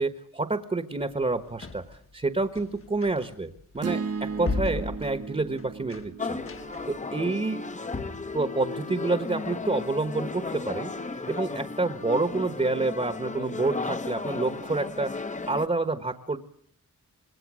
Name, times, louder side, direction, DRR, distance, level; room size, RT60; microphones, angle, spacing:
voice 1, 0.0-1.8 2.1-6.4 6.9-7.6 8.3-10.9 11.3-16.4, right 3 dB, 20° right, 10 dB, 1.2 m, -28 dB
sound 1, 1.0-7.1, left 4 dB, 45° left, 1.4 m, -37 dB
sound 2, 3.8-8.1, right 5 dB, 50° right, 1.1 m, -36 dB
sound 3, 6.2-15.7, left 3 dB, 25° left, 0.9 m, -34 dB
26.0 x 21.0 x 6.2 m, 0.64 s
wide cardioid pair, 170°, 31 cm